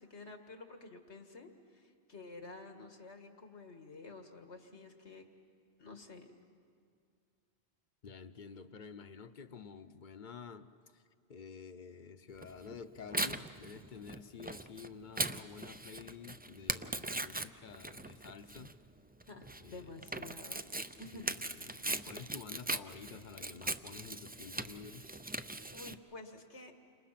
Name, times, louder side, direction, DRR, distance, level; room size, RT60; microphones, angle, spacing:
voice 1, 0.0-5.3 5.8-6.3 19.3-20.6 21.0-21.3 25.7-26.7, left 3 dB, 90° left, 5 dB, 2.1 m, -50 dB
voice 2, 8.0-10.7 10.9-11.0 11.3-18.7 19.6-19.9 21.1-25.1, left 6 dB, 50° left, 11 dB, 0.9 m, -50 dB
Tearing, 12.4-25.9, right 2 dB, 15° right, 0.3 m, -40 dB
30.0 x 26.5 x 5.9 m, 2.3 s
omnidirectional pair, 1.1 m